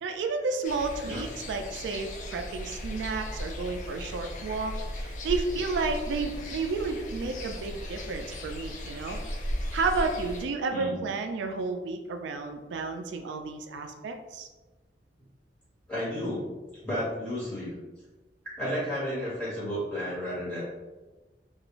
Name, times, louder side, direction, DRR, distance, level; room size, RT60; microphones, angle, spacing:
voice 1, 0.0-4.7 5.0-9.2 9.7-14.5, right 4 dB, 90° right, 5 dB, 0.3 m, -31 dB
sound 1, 0.6-10.4, left 1 dB, 45° left, 0.3 m, -36 dB
voice 2, 15.9-16.5 16.8-17.7 18.6-20.6, equal, 5° left, -12 dB, 1.3 m, -32 dB
2.4 x 2.3 x 3.0 m, 1.2 s
head